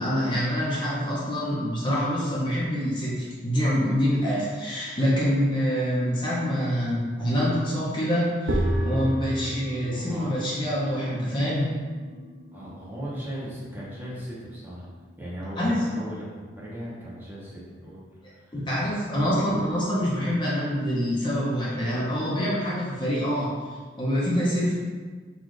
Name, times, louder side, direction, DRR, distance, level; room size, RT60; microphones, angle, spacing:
voice 1, 0.0-11.7 15.6-15.7 18.5-24.8, equal, 25° left, -7 dB, 0.9 m, -26 dB
sound 1, 8.5-15.2, right 1 dB, 85° right, 0.6 m, -33 dB
voice 2, 9.9-10.5 12.5-14.9 15.2-18.0 18.3-18.5, equal, 10° right, -8 dB, 1.0 m, -37 dB
4.1 x 2.6 x 4.8 m, 1.5 s
head